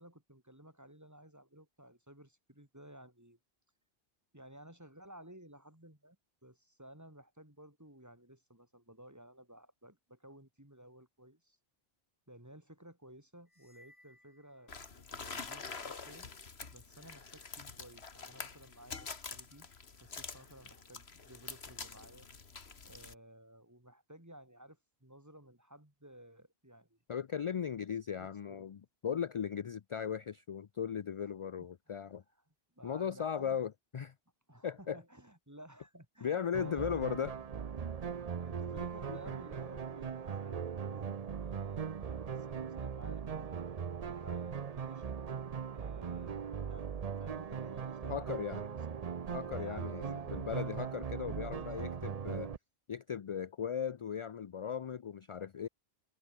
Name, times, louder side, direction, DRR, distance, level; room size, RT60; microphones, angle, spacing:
voice 1, 0.0-3.4 4.3-6.2 6.4-11.6 12.3-16.3 16.7-19.7 20.0-22.3 22.8-27.0 28.1-28.7 31.2-31.3 31.6-31.7 32.5-33.6 34.5-37.4 38.0-43.5 44.1-45.2 45.7-49.2 49.6-52.1, right 1 dB, 15° right, 3.6 m, -56 dB
sound 1, 13.5-15.3, left 1 dB, 30° left, 5.3 m, -65 dB
sound 2, 14.7-23.1, left 5 dB, 85° left, 2.0 m, -46 dB
voice 2, 27.1-32.2 32.8-34.1 34.6-35.0 36.2-37.3 39.1-39.2 48.0-48.7 49.3-52.5 52.9-55.7, left 8 dB, 50° left, 0.4 m, -37 dB
sound 3, 36.5-52.6, right 7 dB, 40° right, 0.7 m, -39 dB
omnidirectional pair, 1.1 m